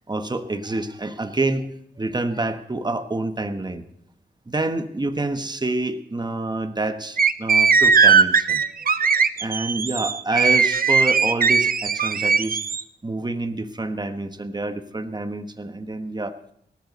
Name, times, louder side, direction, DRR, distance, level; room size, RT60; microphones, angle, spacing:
voice 1, 0.1-1.7 2.0-3.8 4.5-8.6 9.4-12.6 13.0-16.4, right 2 dB, 20° right, 9 dB, 1.1 m, -27 dB
sound 1, 7.2-12.8, right 5 dB, 50° right, 0.6 m, -18 dB
17.5 x 13.5 x 4.1 m, 0.69 s
wide cardioid pair, 80°, 19 cm